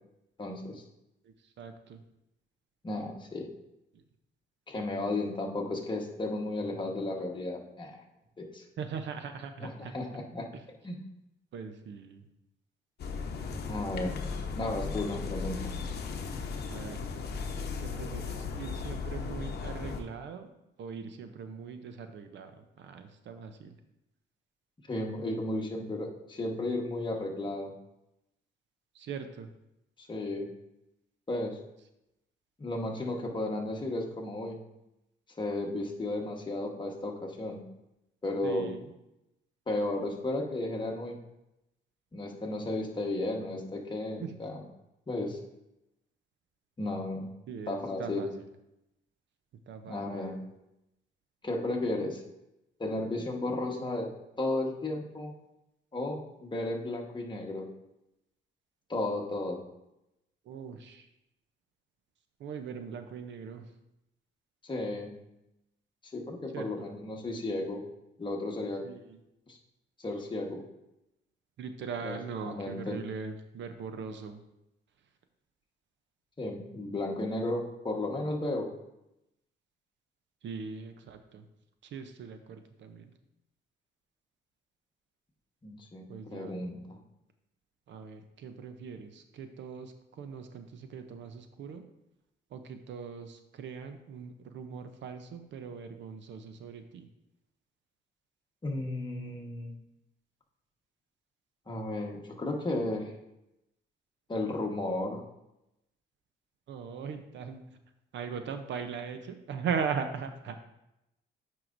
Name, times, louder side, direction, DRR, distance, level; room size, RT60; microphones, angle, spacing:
voice 1, 0.4-0.8 2.8-3.5 4.7-8.0 8.4-8.6 9.6-10.5 10.8-11.0 13.6-14.1 14.6-15.7 24.9-27.7 30.0-30.5 31.3-31.6 32.6-34.6 35.4-37.6 38.2-38.7 39.7-41.1 42.1-44.6 45.1-45.4 46.8-47.4 47.7-48.3 49.9-50.4 51.4-52.2 52.8-54.1 54.4-55.3 55.9-57.7 58.9-59.6 64.6-65.2 66.1-67.8 68.2-68.8 69.5-69.6 70.0-70.6 72.0-72.2 72.4-73.0 76.4-78.7 85.6-87.0 98.6-99.7 101.7-103.1 104.3-105.2, left 2 dB, 25° left, 0 dB, 1.3 m, -34 dB
voice 2, 1.2-2.0 3.9-4.0 8.8-9.9 10.5-10.6 11.5-12.2 16.7-17.0 17.8-20.5 20.8-23.8 28.9-29.5 38.4-38.9 44.2-44.3 47.5-48.5 49.7-50.4 60.4-61.1 62.4-63.7 66.5-66.9 68.8-69.2 71.6-74.4 80.4-81.4 81.8-83.1 86.1-86.6 87.9-91.8 92.5-97.1 106.7-107.6 108.1-110.6, right 6 dB, 65° right, 8 dB, 0.6 m, -40 dB
sound 1, 13.0-20.0, left 5 dB, 55° left, 0.9 m, -36 dB
9.1 x 4.7 x 2.6 m, 0.88 s
cardioid pair, 90°, 20 cm